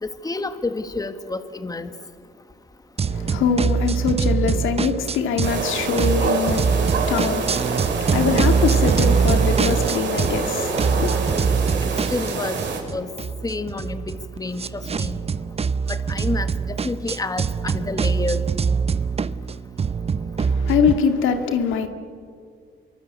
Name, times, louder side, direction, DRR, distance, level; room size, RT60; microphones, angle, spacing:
voice 1, 0.0-1.9 12.1-12.6 12.9-13.1 13.4-15.2 15.9-16.5 16.8-18.4, left 3 dB, 20° left, 1.7 m, -29 dB
sound 1, 3.0-5.6 6.0-10.5 10.8-21.0, right 5 dB, 30° right, 0.8 m, -23 dB
voice 2, 3.1-11.1 20.4-21.9, left 6 dB, 85° left, 2.2 m, -23 dB
sound 2, 5.4-12.8, right 4 dB, 65° right, 6.0 m, -26 dB
26.5 x 23.5 x 8.5 m
cardioid pair, 90°, 20 cm